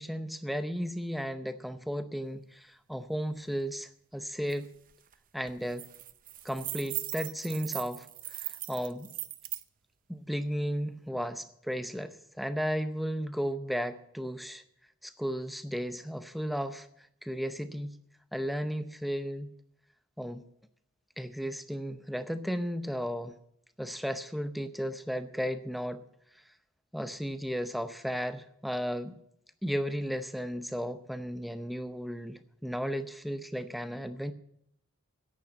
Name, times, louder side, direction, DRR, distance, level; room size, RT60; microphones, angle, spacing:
voice 1, 0.0-4.7 5.3-5.9 6.4-8.1 8.3-9.1 10.1-14.6 15.0-16.9 17.2-17.9 18.3-19.5 20.2-20.5 21.2-23.4 23.8-26.0 26.9-29.2 29.6-34.3, equal, ahead, 10 dB, 0.6 m, -34 dB
sound 1, 4.5-4.6 4.9-5.1 5.5-9.6, right 15 dB, 40° right, 0.6 m, -39 dB
10.5 x 8.6 x 8.8 m, 0.74 s
head